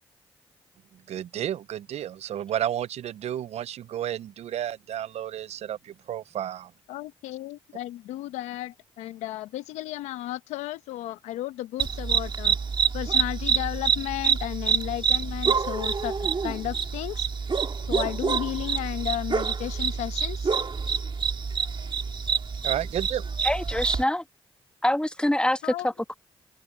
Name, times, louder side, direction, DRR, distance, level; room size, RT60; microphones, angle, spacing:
voice 1, 1.1-6.7 21.8-21.9 22.6-23.3, right 11 dB, 70° right, 0.6 m, -32 dB
voice 2, 6.9-12.6 12.9-17.3 17.9-20.5 25.6-25.9, left 14 dB, 90° left, 0.9 m, -34 dB
sound 1, 11.8-24.0, right 6 dB, 45° right, 1.9 m, -27 dB
voice 3, 23.4-24.2 24.8-26.1, left 1 dB, 10° left, 1.3 m, -25 dB
supercardioid pair, 45°, 12 cm